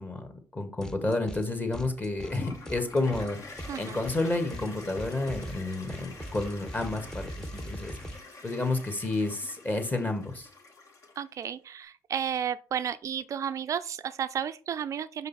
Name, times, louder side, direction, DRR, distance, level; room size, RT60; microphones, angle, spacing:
voice 1, 0.0-7.9 8.4-10.5, left 2 dB, 25° left, 1.9 m, -30 dB
sound 1, 0.8-1.5 1.7-8.2, equal, 10° left, 0.9 m, -42 dB
Toilet flush, 2.2-11.4, left 3 dB, 55° left, 1.8 m, -47 dB
voice 2, 3.7-4.0 11.2-15.3, right 8 dB, 50° right, 0.4 m, -32 dB
5.6 x 5.2 x 4.2 m
supercardioid pair, 70°, 7 cm